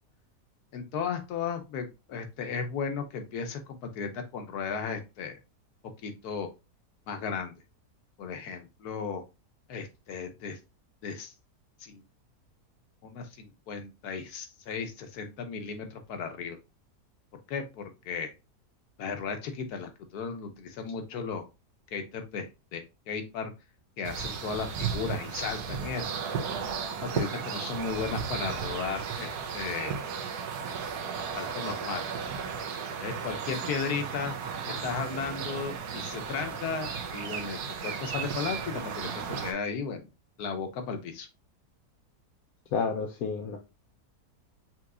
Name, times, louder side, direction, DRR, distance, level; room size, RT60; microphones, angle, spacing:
voice 1, 0.7-5.4 6.0-6.5 7.1-7.5 8.2-9.2 9.7-10.6 11.0-11.3 11.8-12.0 13.0-16.6 17.5-18.3 19.0-21.5 21.9-23.5 24.0-26.2 27.0-30.0 31.3-32.1 33.0-34.4 34.7-40.1 40.4-41.3, left 6 dB, 90° left, 6 dB, 1.3 m, -35 dB
sound 1, 24.0-39.5, right 6 dB, 85° right, 1.3 m, -35 dB
voice 2, 42.7-43.6, left 5 dB, 75° left, 3 dB, 1.1 m, -30 dB
5.7 x 3.0 x 2.4 m, 0.27 s
omnidirectional pair, 1.6 m